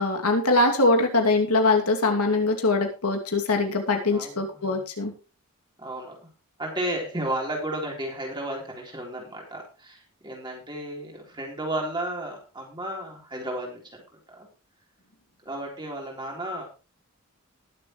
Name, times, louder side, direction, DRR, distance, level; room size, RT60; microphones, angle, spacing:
voice 1, 0.0-5.1, left 2 dB, 90° left, 3 dB, 2.6 m, -22 dB
voice 2, 4.1-4.8 5.8-6.2 6.6-14.0 14.3-14.5 15.4-16.6, right 1 dB, 20° right, -1 dB, 3.9 m, -33 dB
20.0 x 7.6 x 3.2 m, 0.33 s
head